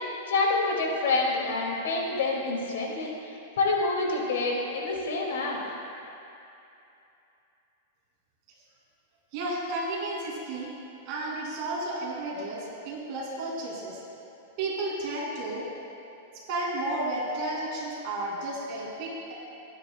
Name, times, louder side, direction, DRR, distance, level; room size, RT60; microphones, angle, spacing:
voice 1, 0.3-3.1 3.6-5.6, left 3 dB, 85° left, -1 dB, 2.3 m, -27 dB
voice 2, 9.3-10.7 11.1-14.0 14.6-15.7 16.3-19.3, right 2 dB, 40° right, -4 dB, 2.6 m, -32 dB
19.0 x 9.4 x 2.3 m, 2.8 s
supercardioid pair, 165°, 0 cm